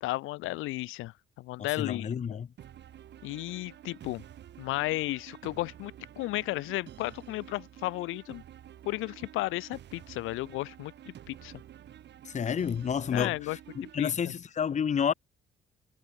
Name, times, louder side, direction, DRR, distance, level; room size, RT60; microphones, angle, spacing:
voice 1, 0.0-2.4 3.2-4.2 4.6-8.4 8.9-10.9 11.3-11.5 13.1-13.6 14.0-14.3, left 19 dB, 90° left, 0.5 m, -34 dB
voice 2, 1.8-2.5 12.2-15.1, left 7 dB, 35° left, 0.7 m, -30 dB
sound 1, 2.6-14.0, right 11 dB, 60° right, 1.0 m, -50 dB
cardioid pair, 90°, 20 cm